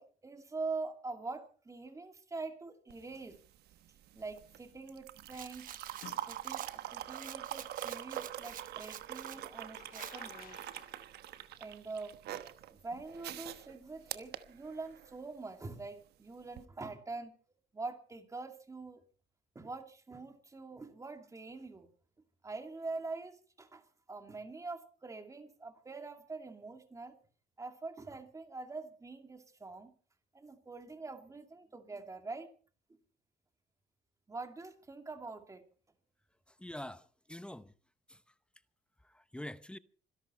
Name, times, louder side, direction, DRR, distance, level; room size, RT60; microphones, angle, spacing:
voice 1, 0.0-3.4 4.1-5.7 6.3-10.7 11.6-12.1 12.7-17.3 17.7-19.0 19.5-21.9 22.4-27.2 27.6-29.9 30.3-32.5 34.3-35.7, right 3 dB, 20° right, 2.5 m, -44 dB
sound 1, 2.9-15.2 16.5-16.6, right 12 dB, 70° right, 1.2 m, -44 dB
sound 2, 4.2-4.5 6.0-6.8 9.3-11.1, left 11 dB, 60° left, 1.1 m, -55 dB
Rattle, 5.3-9.4 9.9-10.2, right 10 dB, 55° right, 0.9 m, -49 dB
voice 2, 36.5-37.7 38.1-38.2 39.0-39.8, left 1 dB, 5° left, 0.7 m, -46 dB
26.0 x 11.5 x 4.4 m
cardioid pair, 110°, 17 cm